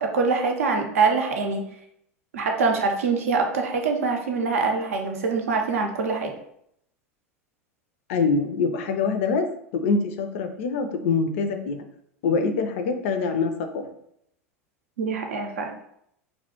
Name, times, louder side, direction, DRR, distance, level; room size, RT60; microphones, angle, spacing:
voice 1, 0.0-1.7 2.3-6.3 15.0-15.7, right 4 dB, 70° right, 3 dB, 0.4 m, -24 dB
voice 2, 8.1-9.5 9.7-11.8 12.2-13.8, left 4 dB, 60° left, 6 dB, 0.4 m, -24 dB
2.1 x 2.0 x 2.9 m, 0.73 s
figure-of-eight pair, 85°, 8 cm